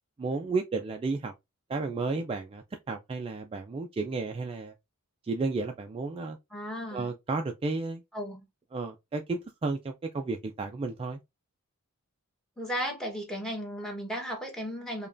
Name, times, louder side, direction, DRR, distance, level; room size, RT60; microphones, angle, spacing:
voice 1, 0.2-1.3 1.7-4.7 5.2-6.4 6.9-8.0 8.7-11.2, right 3 dB, 25° right, 0.3 m, -32 dB
voice 2, 6.5-7.1 8.1-8.5 12.6-15.1, equal, 5° left, 1.1 m, -35 dB
5.1 x 2.3 x 2.5 m
head